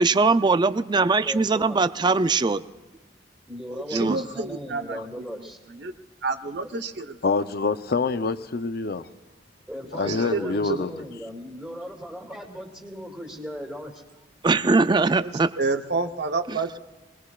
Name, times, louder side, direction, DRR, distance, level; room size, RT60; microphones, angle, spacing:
voice 1, 0.0-2.6 3.9-4.2 10.0-10.3 14.4-15.5 16.5-16.6, right 3 dB, 25° right, 13 dB, 0.4 m, -21 dB
voice 2, 1.2-1.8 3.5-5.6 9.7-14.0, equal, 10° right, -1 dB, 2.2 m, -37 dB
voice 3, 3.7-5.0 5.8-5.9 6.2-7.2 9.9-10.8 15.2-16.8, right 3 dB, 65° right, 6 dB, 0.9 m, -29 dB
voice 4, 7.2-9.1 9.9-10.9, left 4 dB, 55° left, 11 dB, 0.7 m, -26 dB
26.0 x 20.0 x 2.4 m, 1.2 s
head